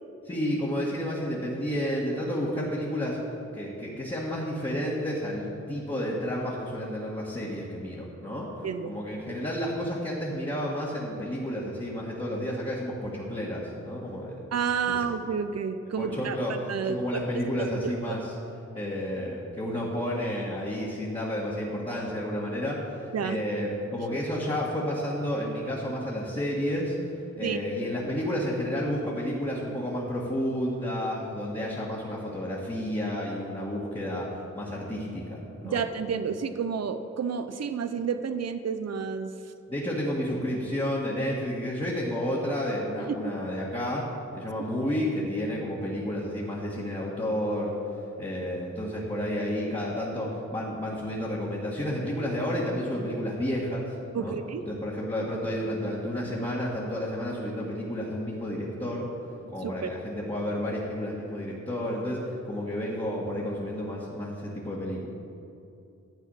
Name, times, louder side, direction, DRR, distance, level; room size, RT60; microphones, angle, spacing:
voice 1, 0.3-3.2 3.5-14.4 14.8-14.9 16.0-16.5 16.9-18.2 18.7-26.9 27.3-35.8 39.7-44.0 44.3-47.7 48.2-53.9 54.1-59.1 59.5-65.1, equal, 20° left, -6 dB, 1.8 m, -31 dB
voice 2, 8.6-9.0 14.5-16.4 16.7-17.2 17.6-18.2 23.1-23.4 27.4-27.6 35.6-39.3 43.1-43.2 54.1-54.6 59.4-59.9, right 6 dB, 60° right, 10 dB, 0.6 m, -30 dB
12.0 x 8.3 x 5.6 m, 2.7 s
wide cardioid pair, 100°, 29 cm